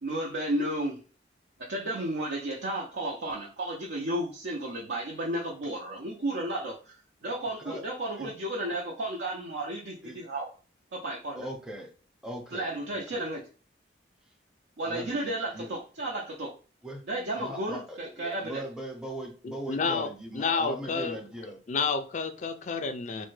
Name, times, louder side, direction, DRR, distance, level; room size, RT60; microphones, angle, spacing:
voice 1, 0.0-1.0 1.7-7.0 7.2-10.5 10.9-11.5 12.5-13.4 14.8-16.5 17.1-18.6, right 1 dB, 65° right, 0.5 m, -33 dB
voice 2, 11.3-11.9 12.2-13.2 14.8-15.8 16.8-17.0 17.4-21.6, right 1 dB, 5° right, 0.6 m, -40 dB
voice 3, 19.4-21.2 21.7-23.3, left 4 dB, 40° left, 0.4 m, -30 dB
3.2 x 2.1 x 3.1 m
head